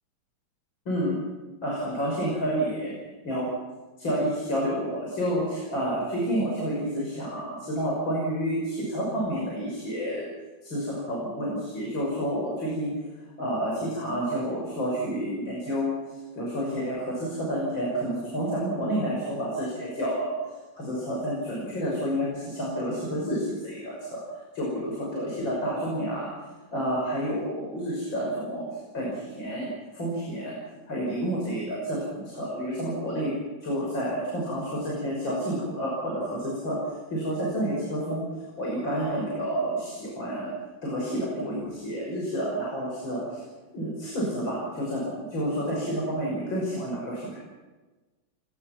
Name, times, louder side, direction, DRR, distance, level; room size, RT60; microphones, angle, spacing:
voice 1, 0.9-1.2 1.6-2.9 3.2-3.5 4.0-10.3 10.6-12.9 13.4-20.4 20.7-24.2 24.5-26.3 26.7-30.6 30.9-33.3 33.6-36.8 37.1-38.2 38.6-40.5 40.8-43.4 43.7-47.4, equal, 70° left, -3 dB, 6.8 m, -29 dB
29.5 x 19.5 x 6.0 m, 1.2 s
omnidirectional pair, 2.2 m